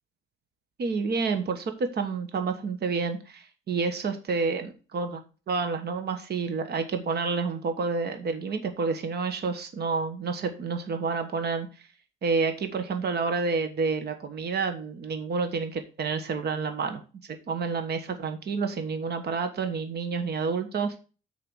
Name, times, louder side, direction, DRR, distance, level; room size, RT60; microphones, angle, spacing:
voice 1, 0.8-5.2 5.5-11.7 12.2-17.0 17.5-20.9, right 4 dB, 55° right, 7 dB, 1.3 m, -29 dB
6.8 x 4.9 x 6.3 m, 0.35 s
cardioid pair, 90°, 20 cm